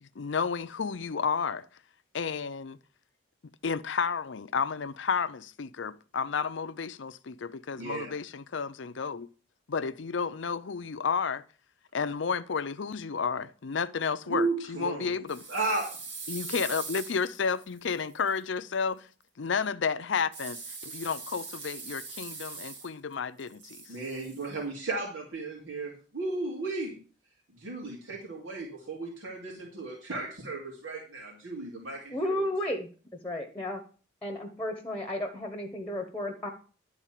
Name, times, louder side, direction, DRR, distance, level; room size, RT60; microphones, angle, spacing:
voice 1, 0.0-1.7 2.1-2.8 3.6-9.3 9.7-11.4 11.9-15.5 16.3-19.1 19.4-23.8, left 5 dB, 70° left, 0.5 m, -31 dB
voice 2, 7.8-8.1 14.3-15.1 15.5-15.9 23.9-26.9 27.6-32.5, right 3 dB, 85° right, 2.6 m, -34 dB
sound 1, 15.3-18.3 20.3-23.1 23.4-24.5, right 4 dB, 65° right, 2.7 m, -42 dB
voice 3, 32.1-32.9 33.2-33.8 34.2-36.5, left 1 dB, 5° left, 1.1 m, -33 dB
11.0 x 4.0 x 7.4 m
head